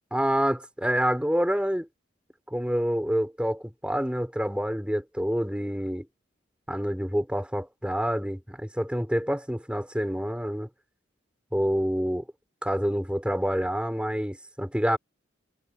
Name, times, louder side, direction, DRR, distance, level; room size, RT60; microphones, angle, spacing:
voice 1, 0.1-1.9 2.5-6.1 6.7-10.7 11.5-12.3 12.6-15.0, equal, 5° right, 5.6 m, -27 dB
head